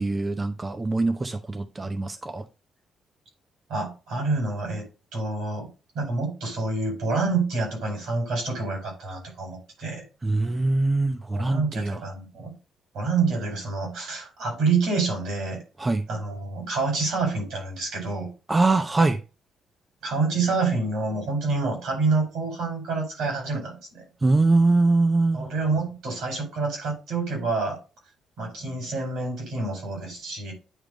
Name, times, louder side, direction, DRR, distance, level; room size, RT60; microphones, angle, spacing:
voice 1, 0.0-2.4 10.2-12.1 15.8-16.0 18.5-19.2 24.2-25.5, right 3 dB, 25° right, 7 dB, 0.7 m, -23 dB
voice 2, 3.7-4.8 5.1-5.7 5.9-10.0 11.3-12.5 12.9-15.6 16.1-18.3 20.0-24.0 25.3-27.8 28.4-30.5, right 3 dB, 80° right, 1 dB, 4.8 m, -27 dB
9.2 x 3.3 x 5.1 m, 0.31 s
supercardioid pair, 65°, 0 cm